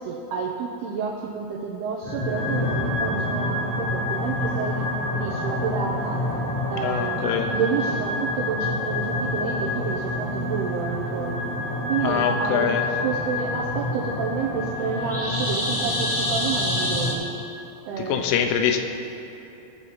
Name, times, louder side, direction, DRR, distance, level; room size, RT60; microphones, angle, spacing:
voice 1, 0.0-4.9 5.1-6.2 6.7-11.5 11.9-12.8 13.0-17.3 17.9-18.4, right 6 dB, 85° right, -2 dB, 2.3 m, -29 dB
sound 1, 2.0-17.1, left 1 dB, 40° left, 0.8 m, -27 dB
voice 2, 6.7-7.6 12.0-12.9 18.0-18.8, left 8 dB, 85° left, 5 dB, 3.3 m, -24 dB
20.5 x 7.5 x 4.2 m, 2.8 s
omnidirectional pair, 5.6 m